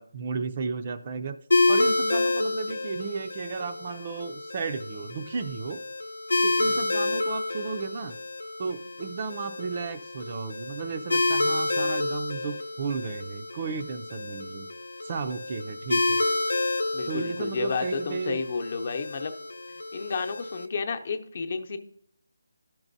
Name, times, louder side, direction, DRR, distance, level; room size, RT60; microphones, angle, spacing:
voice 1, 0.0-1.4 1.7-5.8 6.4-8.2 8.6-14.7 15.0-16.3 17.1-18.4, right 5 dB, 30° right, 8 dB, 0.4 m, -34 dB
sound 1, 1.5-20.7, left 2 dB, 80° left, 0.8 m, -29 dB
voice 2, 16.9-19.3 19.9-21.8, left 4 dB, 40° left, 6 dB, 0.8 m, -31 dB
13.0 x 6.0 x 2.6 m, 0.64 s
figure-of-eight pair, 165°, 0 cm